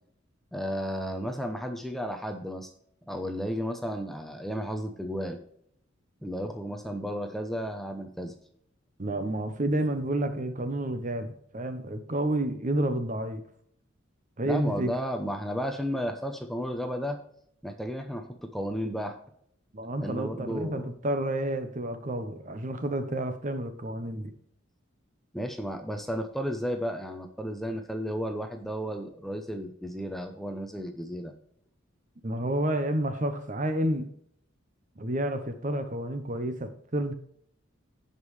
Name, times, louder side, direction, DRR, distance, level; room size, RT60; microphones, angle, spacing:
voice 1, 0.5-2.7 3.1-5.4 6.2-8.3 14.4-17.2 17.6-19.2 20.0-20.9 25.3-31.3, equal, ahead, 0.7 m, -33 dB
voice 2, 9.0-13.4 14.4-14.9 19.7-24.3 32.2-34.1 35.0-37.1, right 1 dB, 40° right, 0.9 m, -30 dB
16.0 x 5.4 x 3.3 m
head